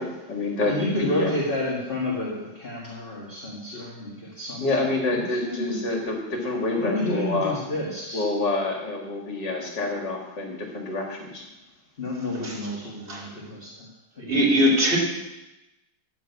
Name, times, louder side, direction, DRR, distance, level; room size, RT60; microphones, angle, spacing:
voice 1, 0.0-1.3 4.6-7.6 8.1-11.4, left 2 dB, 60° left, 0 dB, 2.6 m, -27 dB
voice 2, 0.6-4.7 5.0-5.8 6.8-8.2 12.0-13.9 14.2-14.4, left 1 dB, 30° left, -4 dB, 1.9 m, -30 dB
voice 3, 14.3-15.0, equal, 30° right, -2 dB, 2.9 m, -20 dB
13.5 x 4.7 x 8.1 m, 0.99 s
omnidirectional pair, 2.1 m